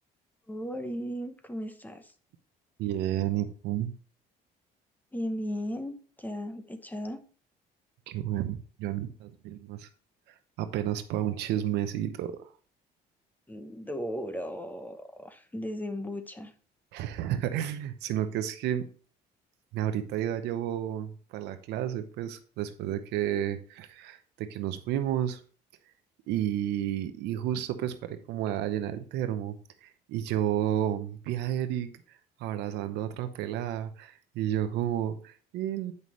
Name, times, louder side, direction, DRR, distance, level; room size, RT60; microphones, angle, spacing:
voice 1, 0.5-2.1 5.1-7.2 13.5-16.5, equal, 10° left, 0.8 m, -36 dB
voice 2, 2.8-3.9 8.1-9.9 10.6-12.5 16.9-18.9 19.7-25.4 26.3-29.6 29.8-31.9 32.4-35.9, right 11 dB, 85° right, 0.8 m, -31 dB
8.2 x 5.4 x 3.1 m
cardioid pair, 110°, 17 cm